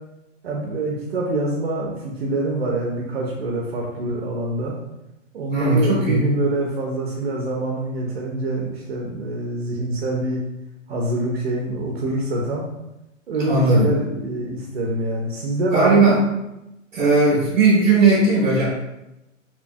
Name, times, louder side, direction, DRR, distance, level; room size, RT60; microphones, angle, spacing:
voice 1, 0.4-4.7 5.3-10.4 10.9-12.7 13.3-16.1, right 2 dB, 55° right, -1 dB, 0.4 m, -25 dB
voice 2, 5.5-6.2 13.5-13.9 15.7-16.2 16.9-18.6, right 3 dB, 5° right, -8 dB, 0.8 m, -17 dB
2.8 x 2.1 x 2.5 m, 0.92 s
hypercardioid pair, 170°, 38 cm